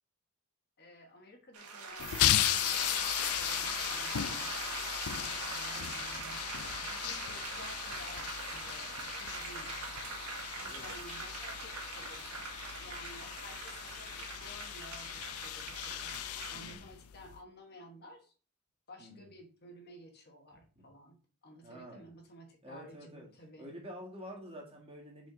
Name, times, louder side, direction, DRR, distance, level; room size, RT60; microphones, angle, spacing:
voice 1, 0.8-5.0 5.4-6.4 6.7-10.0 10.8-12.3 12.8-16.1 16.5-18.3 18.9-23.7, equal, 45° left, 3 dB, 1.2 m, -54 dB
sound 1, 1.5-16.8, right 4 dB, 85° right, 1.6 m, -42 dB
sound 2, 2.0-17.4, left 12 dB, 80° left, 0.4 m, -36 dB
voice 2, 10.6-10.9 16.5-16.9 19.0-19.3 20.8-20.9 21.6-22.1 22.6-23.3 23.6-25.3, equal, 25° right, -2 dB, 1.8 m, -48 dB
5.4 x 5.2 x 3.8 m, 0.39 s
head